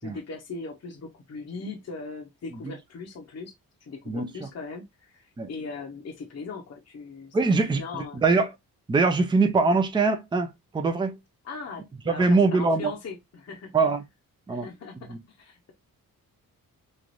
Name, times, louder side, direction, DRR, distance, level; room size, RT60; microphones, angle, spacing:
voice 1, 0.0-3.5 3.8-7.4 7.6-8.2 11.4-13.7 14.5-15.7, left 4 dB, 45° left, 0.8 m, -39 dB
voice 2, 7.3-8.5 8.9-10.5 10.7-11.2 12.1-12.9 13.7-14.0 14.5-14.7 15.1-15.2, right 3 dB, 15° right, 0.4 m, -22 dB
3.2 x 2.4 x 2.4 m
cardioid pair, 105°, 36 cm